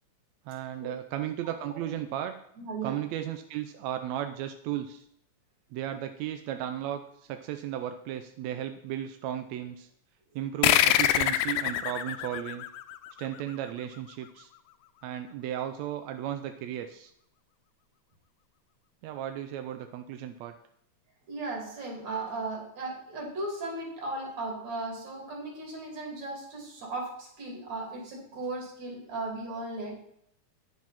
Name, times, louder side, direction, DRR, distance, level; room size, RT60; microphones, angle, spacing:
voice 1, 0.5-2.4 2.8-5.1 5.7-9.9 10.4-12.7 13.2-14.5 15.0-17.1 19.0-20.5, right 11 dB, 75° right, 7 dB, 1.7 m, -35 dB
voice 2, 1.4-2.0 2.6-3.0 21.3-29.9, right 2 dB, 60° right, 0 dB, 4.0 m, -36 dB
sound 1, 10.6-13.7, left 12 dB, 85° left, 2.1 m, -25 dB
9.7 x 7.5 x 5.7 m, 0.73 s
omnidirectional pair, 3.5 m